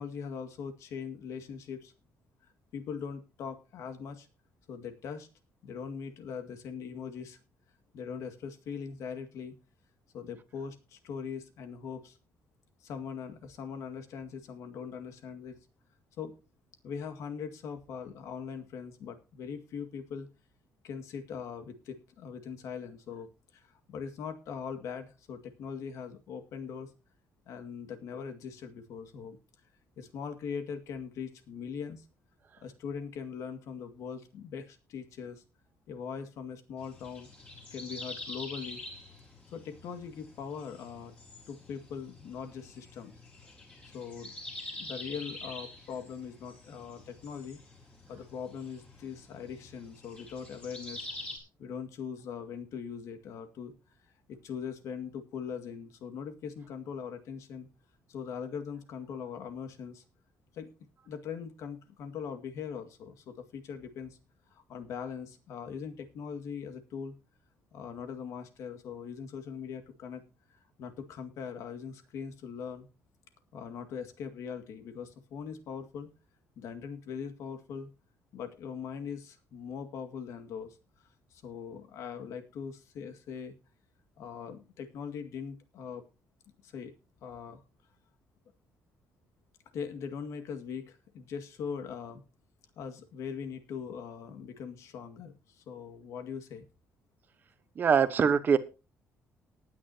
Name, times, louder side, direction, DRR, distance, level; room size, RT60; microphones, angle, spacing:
voice 1, 0.0-1.9 2.7-4.3 4.7-5.3 5.6-7.4 7.9-9.5 10.1-12.2 12.8-15.6 16.2-16.4 16.8-20.3 20.8-26.9 27.5-29.4 30.0-32.1 32.6-35.4 35.9-37.3 37.7-38.8 39.5-41.1 41.5-43.2 43.8-44.3 44.8-47.6 48.1-51.1 51.6-53.7 54.3-57.7 58.1-60.0 60.5-60.7 61.1-64.2 64.5-67.1 67.7-70.2 70.5-72.9 73.5-76.1 76.6-77.9 78.3-80.8 81.3-83.5 84.2-86.0 86.6-86.9 87.2-87.6 89.7-92.2 92.8-96.7, left 6 dB, 70° left, 7 dB, 2.0 m, -41 dB
sound 1, 36.8-51.4, left 2 dB, 20° left, 4.7 m, -46 dB
voice 2, 97.8-98.6, right 6 dB, 35° right, 12 dB, 1.1 m, -23 dB
19.0 x 9.8 x 2.8 m, 0.31 s
cardioid pair, 160°, 5 cm